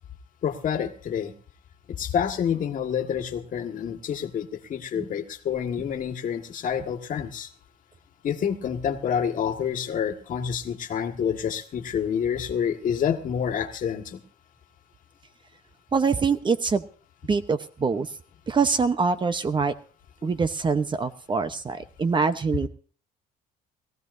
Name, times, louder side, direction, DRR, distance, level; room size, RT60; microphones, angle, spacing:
voice 1, 0.4-1.3 2.0-7.5 8.2-14.2 20.2-20.3, left 8 dB, 50° left, 6 dB, 1.7 m, -28 dB
voice 2, 15.9-16.8 17.3-18.1 18.5-19.7 20.2-22.7, right 5 dB, 30° right, 11 dB, 0.9 m, -24 dB
22.0 x 15.0 x 2.7 m, 0.40 s
cardioid pair, 110°, 17 cm